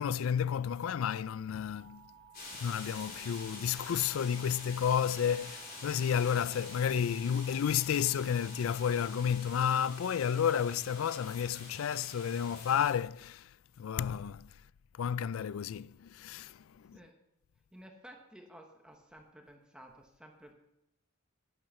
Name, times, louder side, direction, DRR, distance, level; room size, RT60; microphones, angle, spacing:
voice 1, 0.0-2.0 2.5-13.5 13.8-14.5 15.0-17.0, left 8 dB, 80° left, 0.4 m, -31 dB
sound 1, 1.7-9.4, right 8 dB, 55° right, 1.7 m, -57 dB
sound 2, 2.3-12.9, left 3 dB, 50° left, 3.8 m, -47 dB
voice 2, 17.7-20.5, right 1 dB, 5° right, 1.2 m, -54 dB
12.0 x 10.5 x 5.6 m
head